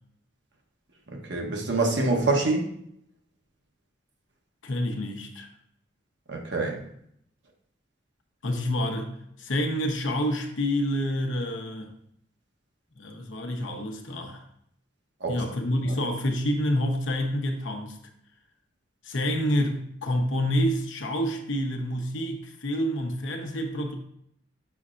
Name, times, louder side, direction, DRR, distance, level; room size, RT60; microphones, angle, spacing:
voice 1, 1.3-2.7 6.3-6.8 15.2-15.4, right 3 dB, 65° right, 1 dB, 1.0 m, -25 dB
voice 2, 4.6-5.5 8.4-9.1 9.4-11.9 13.0-14.4 15.3-18.0 19.0-23.9, equal, 80° left, 3 dB, 0.9 m, -28 dB
6.7 x 5.5 x 2.5 m, 0.71 s
head